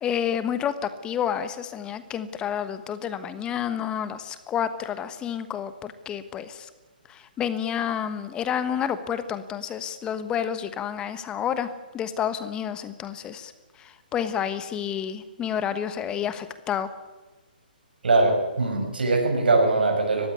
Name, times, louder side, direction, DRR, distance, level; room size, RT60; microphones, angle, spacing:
voice 1, 0.0-6.7 7.1-11.7 11.9-13.5 13.8-16.9, left 8 dB, 15° left, 12 dB, 1.2 m, -29 dB
voice 2, 18.0-20.3, right 3 dB, 75° right, 2 dB, 6.2 m, -21 dB
20.0 x 15.0 x 9.7 m, 1.2 s
hypercardioid pair, 140°, 5 cm